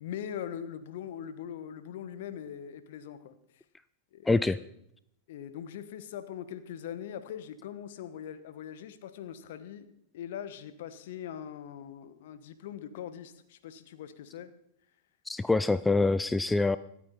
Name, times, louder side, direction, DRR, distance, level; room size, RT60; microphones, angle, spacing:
voice 1, 0.0-3.3 4.1-4.6 5.3-9.9 10.1-14.5, left 9 dB, 55° left, 12 dB, 1.3 m, -41 dB
voice 2, 4.3-4.6 15.3-16.8, left 3 dB, 10° left, 15 dB, 0.4 m, -25 dB
25.0 x 9.0 x 4.3 m, 0.76 s
figure-of-eight pair, 90°, 0 cm